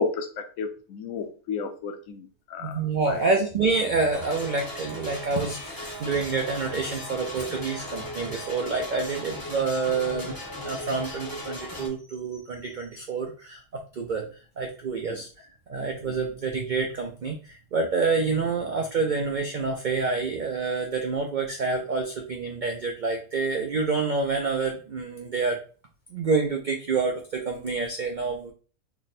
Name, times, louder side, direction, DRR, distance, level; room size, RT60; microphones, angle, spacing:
voice 1, 0.0-2.8 3.1-3.3 15.1-15.2 16.1-16.2, left 4 dB, 75° left, 6 dB, 1.0 m, -32 dB
voice 2, 2.6-10.3 10.6-13.6 13.9-14.3 14.6-25.6 26.1-28.5, right 4 dB, 75° right, 2 dB, 0.4 m, -27 dB
sound 1, 4.1-11.9, left 1 dB, 20° left, 0.7 m, -37 dB
3.3 x 2.2 x 4.0 m, 0.38 s
omnidirectional pair, 1.5 m